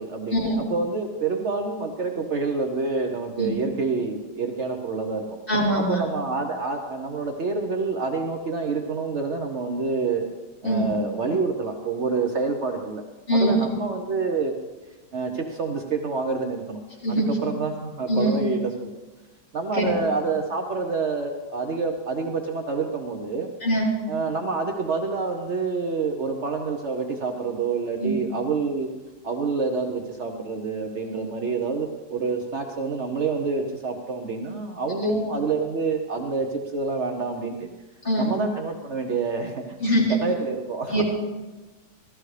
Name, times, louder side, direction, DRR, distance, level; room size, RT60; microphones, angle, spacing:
voice 1, 0.0-5.4 5.8-10.3 10.6-14.5 15.1-16.8 17.1-18.9 19.5-23.5 24.1-28.9 29.2-37.7 38.2-39.8 40.1-41.0, right 4 dB, 90° right, 3 dB, 0.6 m, -27 dB
voice 2, 5.5-6.0 10.6-10.9 13.3-13.5 17.0-17.3 18.1-18.4 19.8-19.9 23.6-23.9 28.0-28.1 35.0-35.1 38.0-38.3 39.8-40.2 40.9-41.0, equal, 25° left, -7 dB, 4.1 m, -22 dB
14.0 x 13.5 x 3.3 m, 1.2 s
omnidirectional pair, 2.4 m